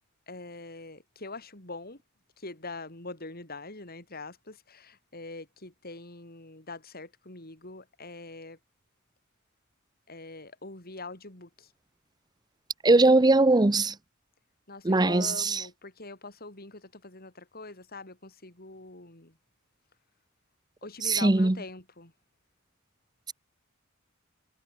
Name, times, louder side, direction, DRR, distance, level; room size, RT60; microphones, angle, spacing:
voice 1, 0.3-2.0 2.4-8.6 10.1-11.7 14.7-19.4 20.8-22.1, left 3 dB, 50° left, 6.2 m, -43 dB
voice 2, 12.8-13.9 14.8-15.6 21.0-21.6, right 2 dB, 20° right, 0.7 m, -21 dB
head